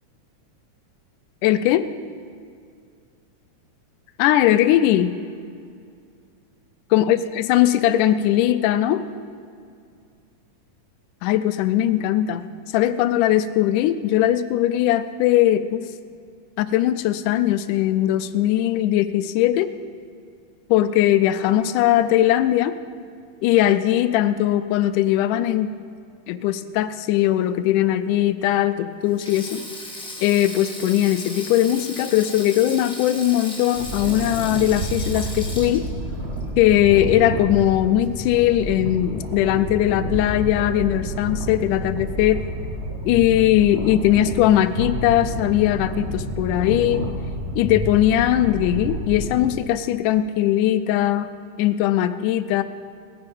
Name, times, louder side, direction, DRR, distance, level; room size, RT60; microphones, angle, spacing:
voice 1, 1.4-1.9 4.2-5.2 6.9-9.0 11.2-15.9 16.6-19.7 20.7-22.8 23.4-25.7 26.3-29.6 30.2-35.9 36.6-42.4 43.1-47.1 47.6-51.3 51.6-52.6, left 12 dB, 80° left, 12 dB, 2.0 m, -20 dB
Sink (filling or washing), 29.1-37.5 37.8-38.0 39.2-39.5, left 1 dB, 5° left, 0.8 m, -37 dB
sound 1, 33.7-49.5, equal, 50° right, 0.7 m, -29 dB
18.0 x 9.2 x 5.3 m, 2.3 s
omnidirectional pair, 3.7 m